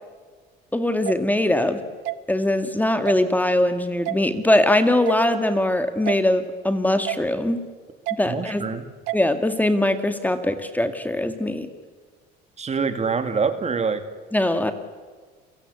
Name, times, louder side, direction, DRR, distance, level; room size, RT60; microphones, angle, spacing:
voice 1, 0.7-1.8 2.3-7.6 8.1-8.6 9.1-11.7 14.3-14.7, left 1 dB, 10° left, 8 dB, 2.1 m, -21 dB
sound 1, 1.1-1.2 2.1-2.2 3.1-3.2 4.1-4.2 5.1-5.2 6.1-6.2 7.1-7.2 8.1-8.2 9.1-9.2, right 18 dB, 75° right, 1.0 m, -28 dB
voice 2, 8.3-8.9 12.6-14.0, right 5 dB, 30° right, 9 dB, 2.2 m, -25 dB
29.5 x 17.0 x 8.4 m, 1.5 s
supercardioid pair, 95°, 21 cm